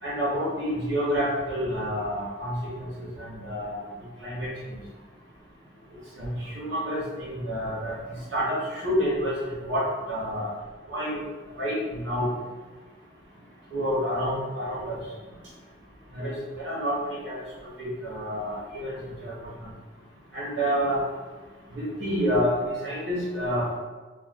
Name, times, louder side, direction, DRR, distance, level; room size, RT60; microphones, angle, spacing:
voice 1, 0.0-3.8 4.2-4.5 6.2-8.0 8.3-10.5 10.9-11.2 11.6-12.3 13.7-15.0 16.1-17.4 17.8-19.3 20.3-21.0 21.7-23.7, equal, 70° right, -7 dB, 0.9 m, -28 dB
2.5 x 2.2 x 3.4 m, 1.3 s
head